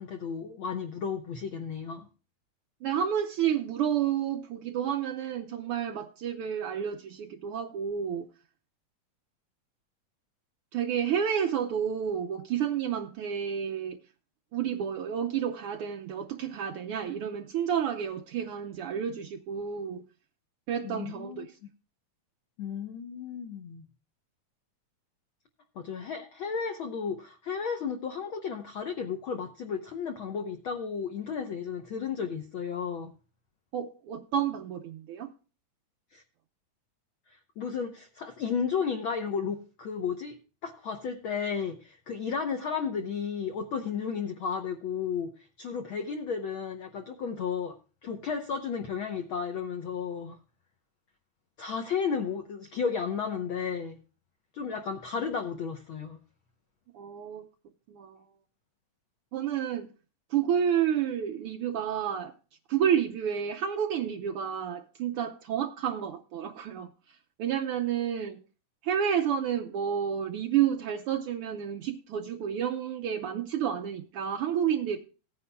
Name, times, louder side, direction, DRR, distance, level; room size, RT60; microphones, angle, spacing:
voice 1, 0.0-2.1 20.8-21.5 22.6-23.8 25.7-33.1 36.1-36.2 37.3-40.3 40.6-47.8 48.0-50.4 51.6-54.0 54.5-56.2, left 6 dB, 70° left, 1.2 m, -33 dB
voice 2, 2.8-8.3 10.7-14.0 14.5-20.0 20.7-21.5 33.7-35.3 56.9-57.4 57.9-58.2 59.3-59.9 60.3-62.3 62.7-66.9 67.4-68.4 68.8-75.0, right 9 dB, 85° right, 1.2 m, -30 dB
18.0 x 9.7 x 2.2 m
omnidirectional pair, 3.3 m